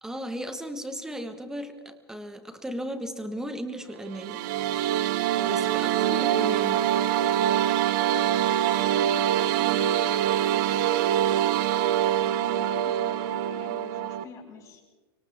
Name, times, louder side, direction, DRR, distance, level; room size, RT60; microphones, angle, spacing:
voice 1, 0.0-4.4 5.4-6.9, equal, 5° right, 7 dB, 1.5 m, -36 dB
sound 1, 4.1-14.2, right 11 dB, 45° right, 0.8 m, -24 dB
voice 2, 5.4-6.3 6.8-7.1 7.3-10.8 12.1-14.8, left 5 dB, 25° left, -2 dB, 6.3 m, -48 dB
29.5 x 25.5 x 3.6 m, 1.4 s
supercardioid pair, 155°, 13 cm